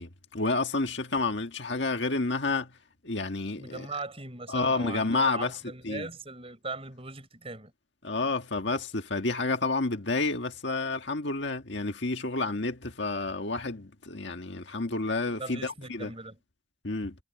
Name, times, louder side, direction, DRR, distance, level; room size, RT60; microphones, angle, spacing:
voice 1, 0.0-2.7 3.0-3.9 4.5-5.6 5.8-6.1 8.0-16.1 16.8-17.2, left 3 dB, 60° left, 1.8 m, -30 dB
voice 2, 3.6-7.7 15.4-16.4, right 3 dB, 30° right, 6.3 m, -39 dB
head